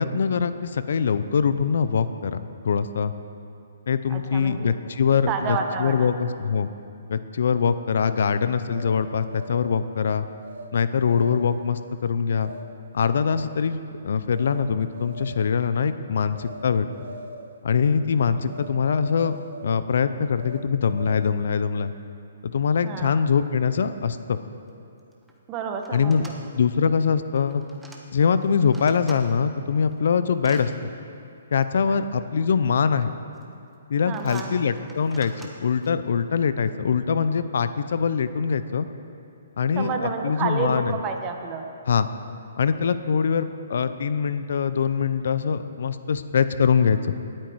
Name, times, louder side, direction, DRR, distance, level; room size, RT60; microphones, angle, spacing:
voice 1, 0.0-2.4 2.6-3.1 3.9-6.7 7.1-10.3 10.7-12.5 12.9-13.8 14.0-16.9 17.6-19.4 19.6-21.9 22.4-24.4 25.9-26.2 26.5-27.6 28.1-30.7 31.5-33.1 33.9-35.3 35.6-38.9 39.6-39.9 40.2-41.0 41.9-42.1 42.6-47.1, left 6 dB, 65° left, 12 dB, 0.6 m, -23 dB
voice 2, 4.1-4.7 5.3-6.1 18.5-18.6 22.8-23.3 25.5-26.3 31.8-32.0 34.1-34.6 39.7-41.6, right 5 dB, 25° right, 4 dB, 1.3 m, -30 dB
sound 1, 8.7-9.8 10.4-10.7 11.0-11.6 12.4-12.6 13.0-13.5 14.3-14.6 14.9-15.6 16.3-16.6 16.9-17.5 18.5-18.7 19.0-19.8 20.4-21.4, right 3 dB, 70° right, 1.2 m, -41 dB
sound 2, 24.7-24.8 25.0-25.3 25.8-26.4 27.3-28.0 28.4-29.2 29.7-30.7 31.6-31.7 32.7-33.1 33.4-33.7 34.1-35.9, right 2 dB, 5° right, 1.2 m, -47 dB
18.5 x 8.9 x 4.7 m, 2.6 s
hypercardioid pair, 140°, 0 cm